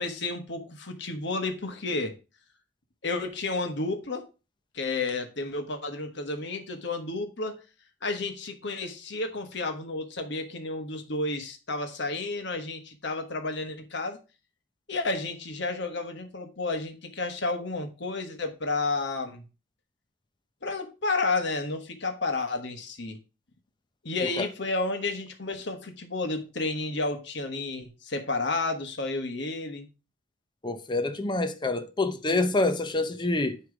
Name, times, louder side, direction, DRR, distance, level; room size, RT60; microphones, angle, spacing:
voice 1, 0.0-2.1 3.0-4.2 4.7-7.6 8.0-14.2 14.9-19.4 20.6-23.2 24.0-29.9, left 3 dB, 60° left, 1.3 m, -31 dB
voice 2, 30.6-33.6, left 2 dB, 25° left, 0.6 m, -27 dB
9.7 x 3.3 x 4.9 m
head